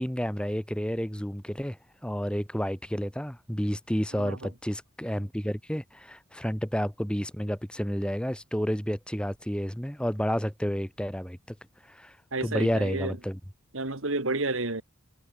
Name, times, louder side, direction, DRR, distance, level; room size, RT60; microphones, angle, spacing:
voice 1, 0.0-1.8 2.0-11.4 11.9-12.1 12.4-13.4, equal, 5° left, 1.8 m, -30 dB
voice 2, 4.1-4.5 12.3-13.2 13.7-14.8, right 2 dB, 70° right, 2.4 m, -30 dB
head